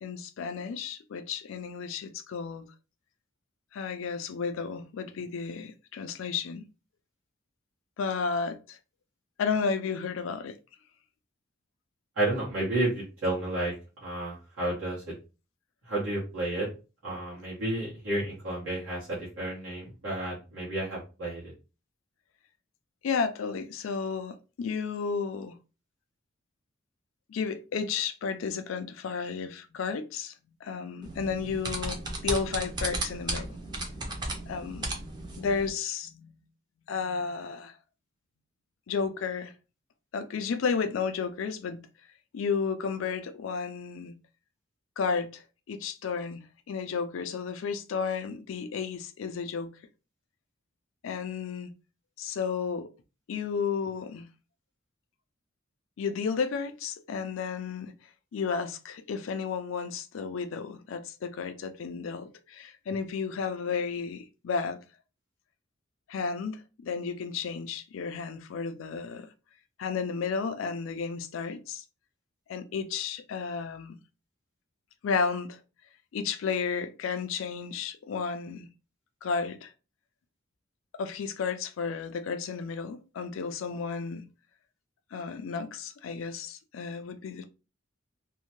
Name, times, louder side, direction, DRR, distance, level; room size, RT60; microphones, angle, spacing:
voice 1, 0.0-2.7 3.7-6.7 8.0-8.8 9.4-10.6 23.0-25.6 27.3-30.3 30.6-33.5 34.1-34.9 35.4-36.4 36.9-37.7 38.9-39.5 40.1-41.8 42.3-44.2 45.0-49.8 51.0-51.7 52.2-52.9 53.3-54.3 56.0-57.9 58.3-64.8 66.1-69.3 69.8-71.8 72.5-74.0 75.0-75.6 76.1-78.7 79.2-79.7 80.9-84.3 85.1-87.5, left 5 dB, 75° left, 0.4 m, -32 dB
voice 2, 12.2-13.7 14.0-15.1 15.9-16.7 17.0-21.5, right 1 dB, 85° right, 1.1 m, -31 dB
sound 1, 31.0-35.7, right 2 dB, 20° right, 0.5 m, -35 dB
2.7 x 2.1 x 2.9 m
head